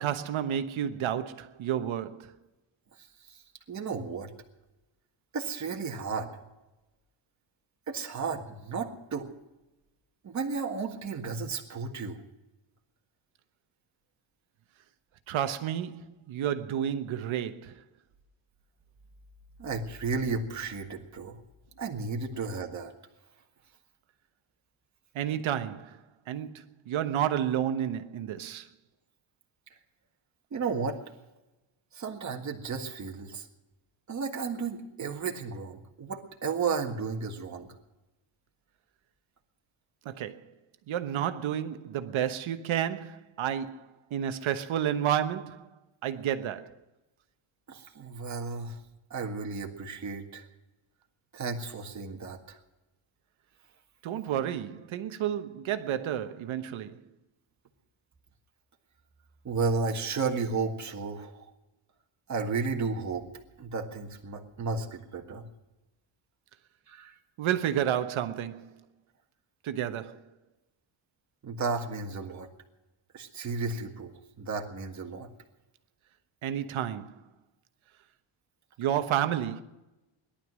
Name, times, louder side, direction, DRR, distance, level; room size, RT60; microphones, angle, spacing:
voice 1, 0.0-2.3 15.3-17.7 25.1-28.7 40.0-40.4 40.9-45.7 46.0-46.7 54.0-57.0 67.4-68.8 69.6-70.3 76.4-77.2 78.8-79.6, right 10 dB, 70° right, 1.2 m, -31 dB
voice 2, 3.0-3.4 3.7-4.3 5.3-6.3 7.9-9.3 10.2-12.2 19.6-21.4 21.8-22.9 30.5-31.0 31.9-33.5 34.1-37.7 47.7-48.8 49.1-50.5 51.3-52.6 59.4-61.5 62.3-63.3 63.6-65.5 66.9-67.1 71.4-72.5 73.1-74.1 74.4-75.3, right 4 dB, 35° right, 1.7 m, -33 dB
18.0 x 11.5 x 6.3 m
cardioid pair, 160°, 50 cm